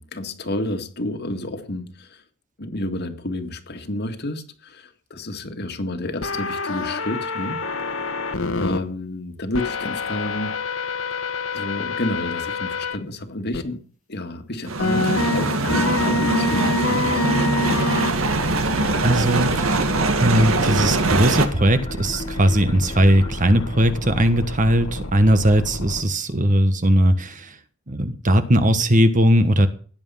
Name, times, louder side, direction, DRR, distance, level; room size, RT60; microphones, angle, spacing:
voice 1, 0.0-2.2 2.6-8.0 8.6-10.6 11.5-13.8 14.1-17.1, left 1 dB, 50° left, 2.0 m, -30 dB
sound 1, 6.2-8.8 9.5-13.0 13.5-13.6 14.8-26.0, left 3 dB, 70° left, 1.7 m, -28 dB
sound 2, 14.7-21.5, right 2 dB, 70° right, 1.8 m, -22 dB
sound 3, 18.5-24.8, equal, 20° left, 2.0 m, -38 dB
voice 2, 19.0-19.9 20.2-27.5 27.9-29.7, equal, 40° right, 1.4 m, -19 dB
16.5 x 9.9 x 5.7 m
head